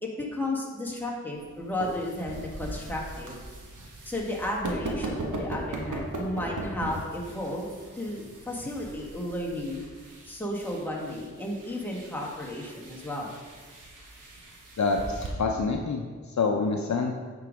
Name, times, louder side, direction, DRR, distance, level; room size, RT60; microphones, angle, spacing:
voice 1, 0.0-3.3 4.1-7.7 8.0-9.8 10.2-13.3, left 1 dB, 5° left, -3 dB, 1.7 m, -33 dB
sound 1, 1.3-15.3, right 2 dB, 90° right, 1.2 m, -39 dB
voice 2, 14.8-17.1, left 4 dB, 65° left, 2 dB, 0.6 m, -27 dB
9.1 x 3.9 x 5.1 m, 1.5 s
wide cardioid pair, 55°, 30 cm